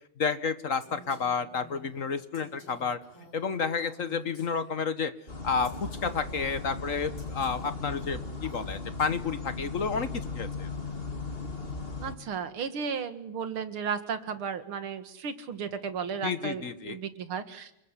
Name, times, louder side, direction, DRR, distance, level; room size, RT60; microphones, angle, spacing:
voice 1, 0.2-3.0 3.3-5.1 5.4-10.7 16.2-17.0, left 5 dB, 45° left, 13 dB, 1.4 m, -30 dB
Female speech woman speaking, 0.8-5.0 5.6-9.6, equal, 75° left, 8.3 m, -52 dB
sound 1, 5.3-12.1, left 4 dB, 25° left, 2.5 m, -37 dB
voice 2, 12.0-17.7, right 6 dB, 75° right, 10 dB, 2.7 m, -34 dB
28.5 x 21.0 x 9.9 m, 0.79 s
omnidirectional pair, 2.3 m